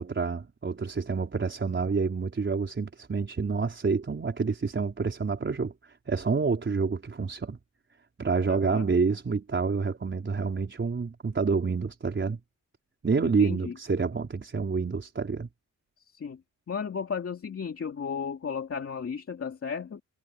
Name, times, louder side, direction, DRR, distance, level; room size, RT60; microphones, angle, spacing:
voice 1, 0.0-7.6 8.2-12.4 13.0-15.5, right 4 dB, 35° right, 4.5 m, -28 dB
voice 2, 8.5-8.9 13.2-13.7 16.1-16.4 16.7-20.0, left 6 dB, 45° left, 2.3 m, -34 dB
wide cardioid pair, 130°, 33 cm